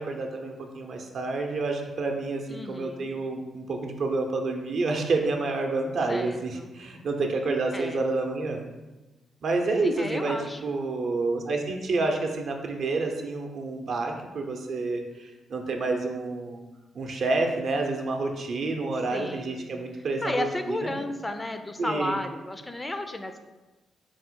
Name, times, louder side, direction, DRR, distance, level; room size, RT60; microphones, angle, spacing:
voice 1, 0.0-8.6 9.4-16.6 16.9-20.9 21.8-22.2, right 3 dB, 65° right, 2 dB, 0.6 m, -29 dB
voice 2, 2.5-3.1 6.1-6.7 7.7-8.0 9.8-10.6 19.1-19.7 20.2-23.4, left 1 dB, 20° left, 7 dB, 0.4 m, -33 dB
4.4 x 2.0 x 4.5 m, 1.1 s
supercardioid pair, 60°, 0 cm